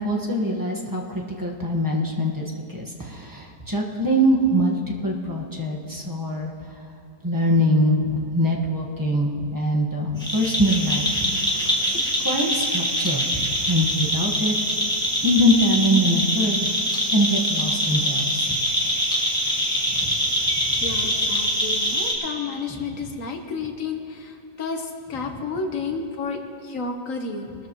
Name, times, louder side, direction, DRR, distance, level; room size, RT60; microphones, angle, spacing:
voice 1, 0.0-4.8 5.0-6.5 7.2-11.0 11.3-11.8 12.2-14.5 15.2-16.6 17.1-18.6 20.0-20.1 20.7-20.8, equal, 15° right, -2 dB, 1.2 m, -23 dB
sound 1, 10.2-22.1, equal, 5° left, 2.0 m, -24 dB
voice 2, 20.8-27.7, left 4 dB, 55° left, 4 dB, 1.4 m, -31 dB
21.5 x 13.5 x 3.1 m, 2.8 s
omnidirectional pair, 1.8 m